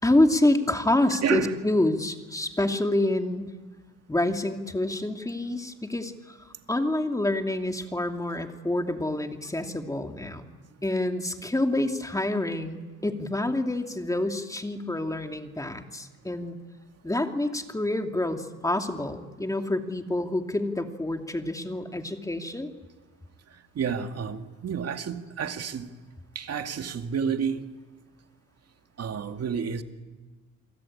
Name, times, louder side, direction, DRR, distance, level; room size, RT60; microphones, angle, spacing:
voice 1, 0.0-3.5 4.1-10.5 10.8-16.6 17.0-22.7, left 1 dB, 10° left, 2.7 m, -27 dB
voice 2, 1.1-1.6 23.7-25.9 26.4-27.7 29.0-29.8, right 7 dB, 55° right, 2.3 m, -30 dB
29.0 x 23.5 x 8.7 m
cardioid pair, 90°, 30 cm